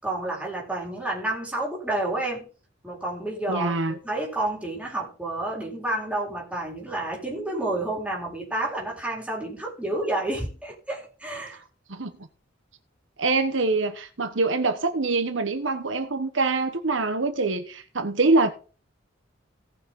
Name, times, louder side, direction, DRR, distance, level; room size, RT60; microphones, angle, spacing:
voice 1, 0.0-2.5 2.8-11.6, right 2 dB, 5° right, 4.3 m, -30 dB
voice 2, 3.5-3.9 11.9-12.1 13.2-18.5, right 3 dB, 75° right, 1.2 m, -24 dB
17.5 x 6.5 x 3.8 m
head